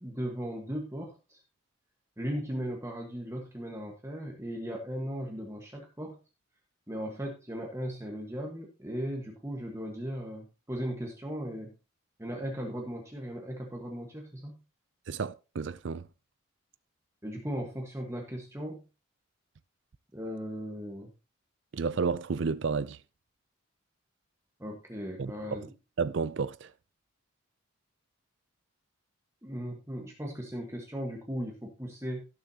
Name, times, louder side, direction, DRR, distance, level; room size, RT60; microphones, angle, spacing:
voice 1, 0.0-1.4 2.2-6.2 6.9-11.7 12.2-14.6 17.2-18.8 20.1-21.1 24.6-25.7 29.4-32.2, equal, 15° right, 1.4 m, -37 dB
voice 2, 15.1-16.1 21.7-23.0 25.2-25.7 26.0-26.7, right 5 dB, 60° right, 0.4 m, -31 dB
17.0 x 7.0 x 2.8 m
head